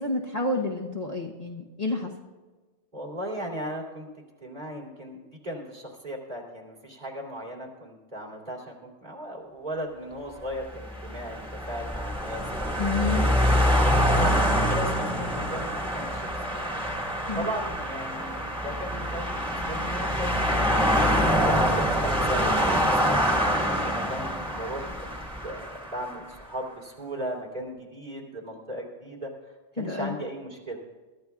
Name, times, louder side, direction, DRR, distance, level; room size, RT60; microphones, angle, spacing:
voice 1, 0.0-2.1 12.8-13.2 17.3-17.5 29.8-30.2, left 3 dB, 35° left, -1 dB, 1.2 m, -29 dB
voice 2, 2.9-4.1 4.4-14.9 15.2-16.6 17.3-25.1 25.4-30.8, equal, 40° right, -3 dB, 3.0 m, -37 dB
sound 1, 10.7-26.1, equal, 5° right, 1.9 m, -25 dB
23.0 x 14.0 x 2.4 m, 1.3 s
omnidirectional pair, 1.2 m